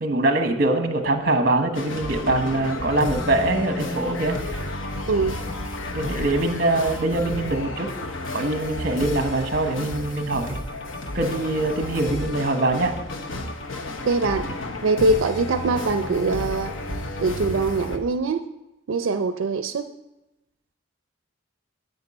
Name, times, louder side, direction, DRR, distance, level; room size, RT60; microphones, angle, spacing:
voice 1, 0.0-4.6 5.9-7.9 8.3-10.6 11.1-13.0, right 2 dB, 45° right, 6 dB, 1.1 m, -23 dB
sound 1, 1.7-18.0, left 2 dB, 90° left, 1.0 m, -31 dB
voice 2, 5.1-5.4 14.0-14.5 14.8-16.7 17.2-18.4 18.9-19.9, right 3 dB, 85° right, 9 dB, 0.4 m, -23 dB
10.5 x 8.1 x 4.2 m, 0.97 s
head